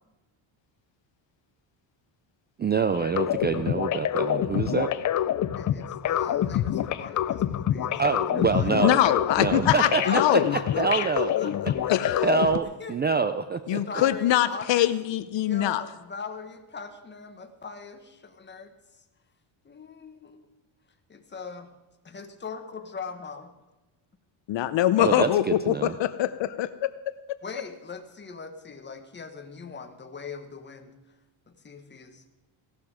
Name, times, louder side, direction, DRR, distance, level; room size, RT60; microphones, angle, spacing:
voice 1, 2.6-4.9 8.0-9.0 9.4-10.4 10.8-11.4 12.2-13.8 25.0-25.9, right 5 dB, 25° right, 11 dB, 0.3 m, -26 dB
sound 1, 2.9-12.6, left 11 dB, 40° left, 0.5 m, -27 dB
voice 2, 5.5-8.8 9.7-13.0 13.8-14.9 15.3-18.7 19.6-20.4 21.1-21.7 22.0-23.5 27.4-30.9 31.5-32.2, left 4 dB, 20° left, 6 dB, 1.3 m, -40 dB
voice 3, 8.8-10.5 11.9-12.3 13.7-15.8 24.5-26.7, left 13 dB, 60° left, 13 dB, 0.8 m, -23 dB
16.5 x 12.0 x 4.9 m, 1.1 s
cardioid pair, 145°, 49 cm